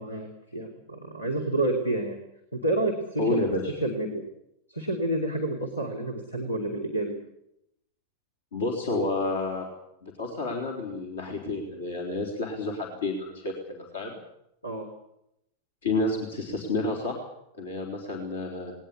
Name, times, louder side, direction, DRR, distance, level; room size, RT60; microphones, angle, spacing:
voice 1, 0.0-2.2 2.5-3.4 3.8-4.2 4.7-7.2 14.6-14.9, right 1 dB, 85° left, 3 dB, 3.2 m, -29 dB
voice 2, 3.2-3.7 8.5-9.7 10.0-14.2 15.8-17.2 17.6-18.7, left 2 dB, 65° left, 1 dB, 4.0 m, -30 dB
20.0 x 19.0 x 8.5 m, 0.80 s
figure-of-eight pair, 90°, 0 cm